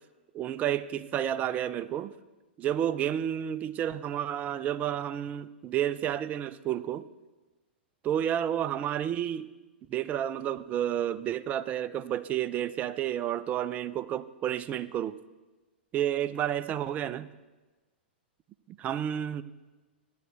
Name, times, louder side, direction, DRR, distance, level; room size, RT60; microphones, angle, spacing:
voice 1, 0.3-2.2 2.6-7.1 8.0-9.5 9.9-15.2 15.9-17.3 18.8-19.4, right 10 dB, 25° right, 14 dB, 0.4 m, -30 dB
15.0 x 10.0 x 3.4 m, 1.2 s
hypercardioid pair, 110°, 6 cm